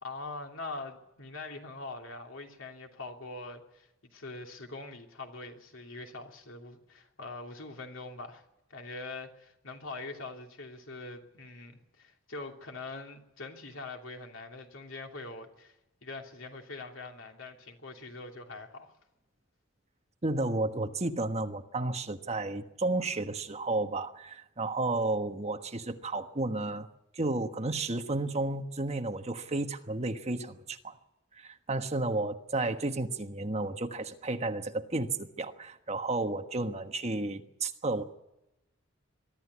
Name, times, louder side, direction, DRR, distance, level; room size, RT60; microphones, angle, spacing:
voice 1, 0.0-15.7 16.0-18.9, left 3 dB, 75° left, 3.0 m, -43 dB
voice 2, 20.2-26.9 27.2-31.0 31.3-38.0, right 2 dB, 35° right, 1.3 m, -32 dB
23.0 x 13.0 x 9.7 m
head